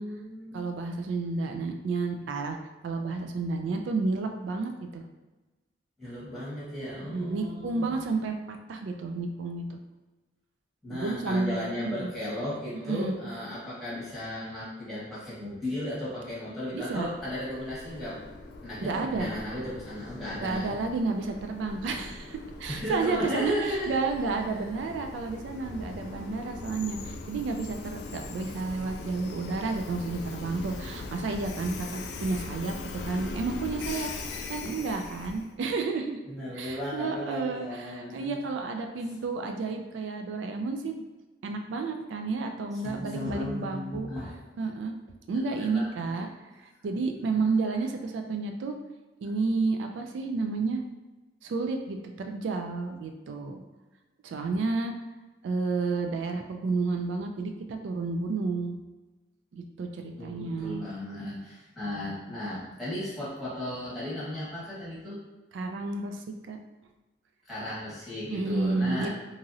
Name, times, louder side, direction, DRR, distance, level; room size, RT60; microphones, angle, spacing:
voice 1, 0.0-0.5 6.0-8.0 10.8-18.2 18.6-20.8 22.7-23.9 24.5-24.6 36.3-38.4 42.8-44.3 45.5-46.2 47.0-47.5 60.2-65.2 67.5-69.1, left 1 dB, ahead, -10 dB, 1.1 m, -35 dB
voice 2, 0.5-2.6 2.8-5.0 7.1-9.8 10.9-12.1 12.9-13.1 16.7-17.1 18.8-19.3 20.4-36.2 36.5-41.0 41.4-44.1 44.6-44.9 45.3-46.3 46.8-48.7 49.2-50.8 51.4-53.6 54.2-54.9 55.4-58.8 59.5-60.8 65.5-66.6 68.3-69.1, right 3 dB, 85° right, 5 dB, 0.3 m, -31 dB
Train, 16.8-35.5, left 3 dB, 65° left, 0.3 m, -41 dB
2.9 x 2.6 x 2.5 m, 1.2 s
head